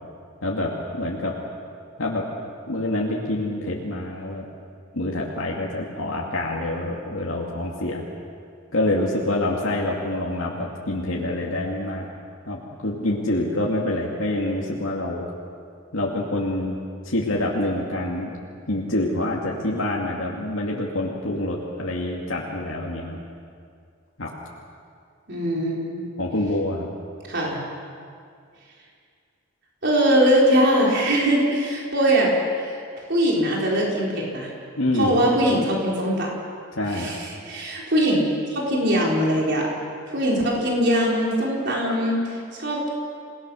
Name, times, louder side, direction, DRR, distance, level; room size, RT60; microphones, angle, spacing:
voice 1, 0.4-1.3 2.0-2.2 2.7-4.5 4.9-8.0 8.7-12.1 12.5-15.2 15.9-16.8 17.0-18.3 18.7-23.2 24.2-24.3 26.2-26.9 34.8-35.2 36.8-37.1, left 1 dB, 75° left, -3 dB, 2.4 m, -26 dB
voice 2, 25.3-26.1 27.3-27.6 29.8-32.8 33.1-34.5 34.9-36.3 36.9-39.7 40.1-42.9, equal, 55° right, -3 dB, 4.5 m, -21 dB
28.0 x 19.0 x 6.4 m, 2.3 s
head